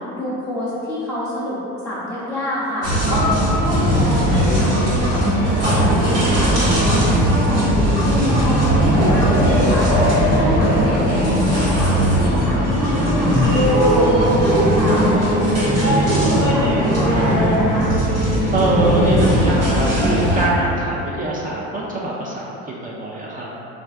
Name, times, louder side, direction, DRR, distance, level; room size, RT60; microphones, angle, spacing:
voice 1, 0.0-1.6 1.8-9.9 10.3-15.4 15.8-17.9, left 1 dB, 5° left, -11 dB, 0.8 m, -27 dB
sound 1, 2.8-20.5, equal, 90° right, 1.1 m, -18 dB
sound 2, 8.7-19.9, equal, 45° right, 0.8 m, -24 dB
voice 2, 18.5-23.5, right 2 dB, 25° right, -4 dB, 0.4 m, -23 dB
3.2 x 2.3 x 2.5 m, 3.0 s
supercardioid pair, 80°, 33 cm